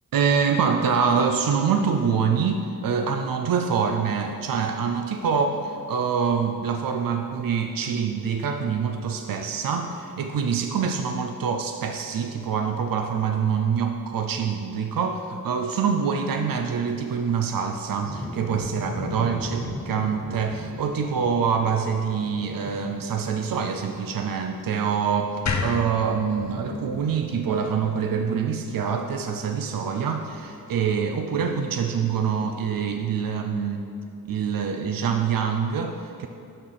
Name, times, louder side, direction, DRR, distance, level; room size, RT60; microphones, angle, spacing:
voice 1, 0.1-33.9 34.3-36.3, right 6 dB, 80° right, 5 dB, 0.6 m, -25 dB
sound 1, 17.0-28.3, left 2 dB, 10° left, 0.7 m, -39 dB
sound 2, 25.5-28.6, left 4 dB, 55° left, 0.7 m, -32 dB
6.8 x 6.3 x 5.8 m, 2.7 s
wide cardioid pair, 130°, 34 cm